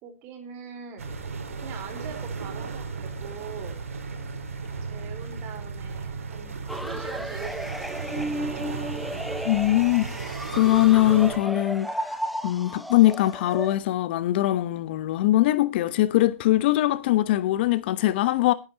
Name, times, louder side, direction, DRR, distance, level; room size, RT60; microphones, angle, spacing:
voice 1, 0.0-1.1 1.6-3.7 4.8-8.9, right 7 dB, 30° right, 4.3 m, -42 dB
sound 1, 1.0-11.4, right 4 dB, 80° right, 4.6 m, -35 dB
sound 2, 6.7-13.8, equal, ahead, 0.7 m, -33 dB
voice 2, 9.4-12.2 12.4-18.5, left 15 dB, 45° left, 1.0 m, -22 dB
19.0 x 9.8 x 2.9 m
hypercardioid pair, 140°, 8 cm